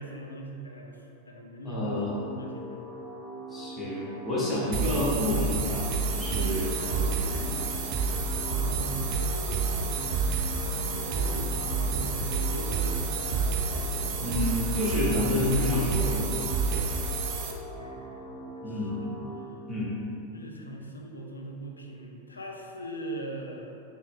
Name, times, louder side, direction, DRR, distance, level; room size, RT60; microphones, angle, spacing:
voice 1, 0.0-2.9 8.6-13.6 17.8-19.1 20.3-23.8, right 1 dB, 80° left, 1 dB, 0.3 m, -41 dB
voice 2, 1.6-2.2 3.5-7.6 14.2-16.4 16.7-16.9 18.6-19.0 19.7-19.9, left 1 dB, 15° left, -8 dB, 1.0 m, -29 dB
sound 1, 1.8-19.4, right 1 dB, ahead, 1.2 m, -42 dB
sound 2, 4.7-17.5, right 4 dB, 45° right, 0.3 m, -29 dB
sound 3, 5.3-14.8, left 1 dB, 45° left, 0.9 m, -44 dB
3.8 x 2.0 x 3.6 m, 2.7 s
figure-of-eight pair, 90°, 0 cm